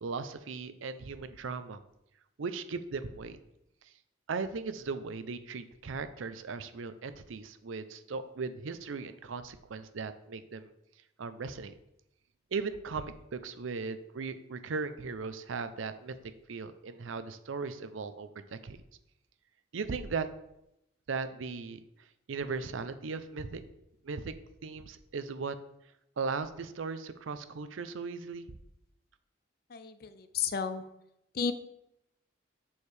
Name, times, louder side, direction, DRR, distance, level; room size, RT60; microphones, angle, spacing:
voice 1, 0.0-1.8 2.4-3.4 4.3-10.7 11.2-11.7 12.5-16.2 16.5-18.8 19.7-20.3 21.1-21.8 22.3-23.6 24.0-24.3 24.6-25.6 26.2-28.5, right 4 dB, 85° right, 11 dB, 0.5 m, -37 dB
voice 2, 29.7-30.9 31.3-31.5, left 6 dB, 50° left, 11 dB, 0.5 m, -33 dB
7.1 x 6.4 x 3.3 m, 0.83 s
head